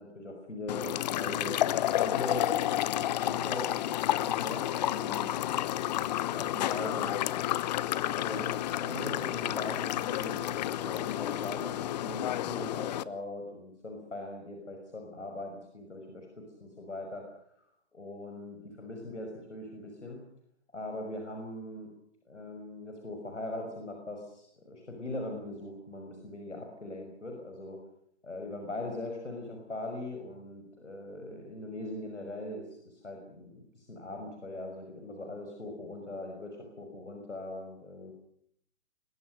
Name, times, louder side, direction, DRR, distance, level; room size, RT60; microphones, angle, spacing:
voice 1, 0.0-1.6 1.9-3.8 4.1-5.3 6.3-7.2 8.1-17.2 17.6-20.2 20.7-21.9 22.3-27.8 28.2-38.1, left 2 dB, 90° left, 2 dB, 6.1 m, -41 dB
sound 1, 0.7-13.0, left 13 dB, 35° left, 0.9 m, -31 dB
23.0 x 22.0 x 6.6 m, 0.69 s
figure-of-eight pair, 130°, 35 cm